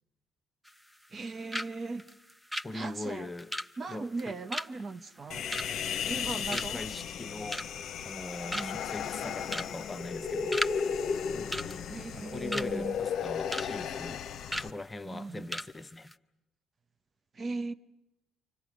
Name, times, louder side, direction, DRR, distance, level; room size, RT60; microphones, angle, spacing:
sound 1, 0.7-1.3 1.5-1.7 2.0-6.2 6.5-6.9 7.3-7.9 8.2-8.3 8.5-8.9 9.5-9.7 10.0-10.8 11.0-11.2 11.5-12.7 13.1-13.7 14.0-14.1 14.5-14.7 15.1-15.2 15.5-15.7 16.0-16.1, equal, 5° right, 0.8 m, -36 dB
voice 1, 1.1-2.1 2.7-3.3 3.8-5.5 6.1-6.9 8.5-8.8 11.9-13.0 15.0-15.5 17.3-17.7, right 3 dB, 40° right, 0.8 m, -38 dB
voice 2, 2.6-3.5 3.9-4.4 6.0-7.7 8.0-10.6 11.3-14.3 14.6-16.1, left 2 dB, 25° left, 0.8 m, -41 dB
Human voice, 5.3-14.7, left 7 dB, 60° left, 0.8 m, -35 dB
29.0 x 25.5 x 6.3 m
hypercardioid pair, 60°, 0 cm